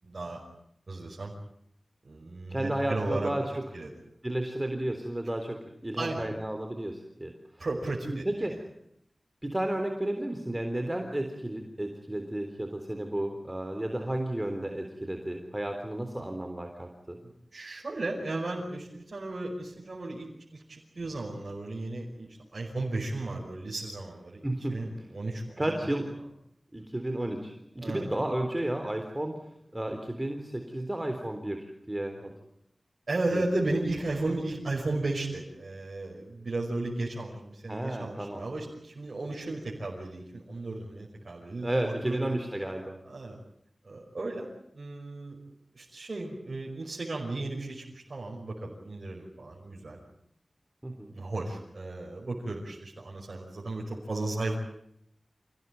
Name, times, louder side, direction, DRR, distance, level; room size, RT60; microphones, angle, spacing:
voice 1, 0.0-0.4 0.9-1.3 2.0-3.3 3.7-3.9 6.0-6.3 7.6-8.2 17.2-24.4 24.7-25.9 27.8-28.1 33.1-42.3 43.1-43.4 43.8-45.4 45.7-50.0 51.1-54.6, right 2 dB, 65° right, -3 dB, 5.4 m, -35 dB
voice 2, 2.5-3.6 4.2-7.7 8.0-8.6 9.4-17.2 24.4-24.8 25.6-26.2 26.7-29.4 29.7-32.3 33.3-33.4 33.7-33.8 37.7-38.4 41.6-43.0 50.8-51.1, right 1 dB, 20° right, 5 dB, 3.7 m, -32 dB
28.0 x 17.5 x 9.4 m, 0.74 s
cardioid pair, 45°, 0 cm